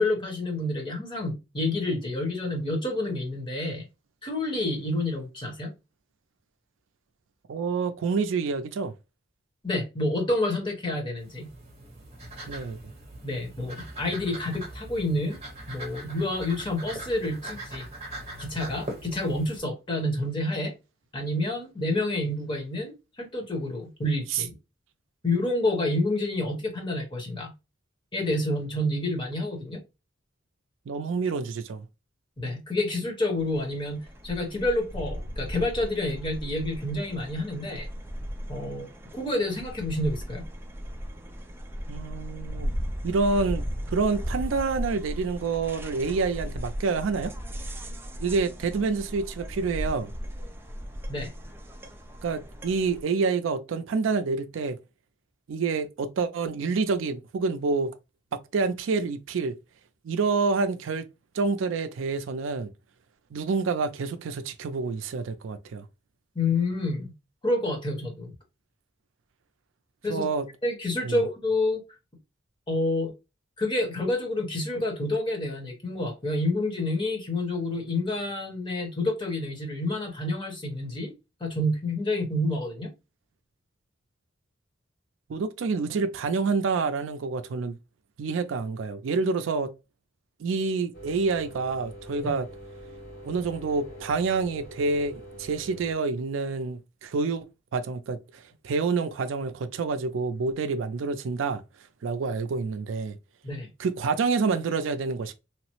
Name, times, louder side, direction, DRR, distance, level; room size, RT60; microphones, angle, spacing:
voice 1, 0.0-3.9 4.2-5.7 9.6-11.5 13.2-15.4 15.7-17.9 18.4-20.7 21.1-22.9 23.2-24.5 25.2-27.5 28.1-29.8 32.4-37.9 38.5-38.9 39.1-40.5 51.1-51.3 66.3-67.1 67.4-68.3 70.0-70.2 70.6-71.8 72.7-73.1 73.6-81.1 81.4-82.9 92.2-92.3 103.4-103.7, left 2 dB, 25° left, 1.0 m, -28 dB
voice 2, 7.5-8.9 12.5-12.8 24.3-24.4 30.9-31.9 41.9-42.7 43.0-43.6 43.9-47.3 48.2-50.1 52.2-54.8 55.5-57.9 58.3-59.5 60.0-61.0 61.3-62.7 63.3-65.8 70.1-70.5 71.0-71.2 85.3-87.8 88.2-89.7 90.4-92.5 93.2-97.5 97.7-101.6 102.0-103.2 103.8-105.3, right 4 dB, 80° right, 0.4 m, -28 dB
sound 1, 11.2-19.6, right 1 dB, 35° right, 0.9 m, -41 dB
sound 2, 33.4-53.0, equal, 10° right, 0.4 m, -36 dB
sound 3, 90.9-95.9, equal, 50° left, 1.2 m, -44 dB
3.1 x 2.0 x 3.0 m
head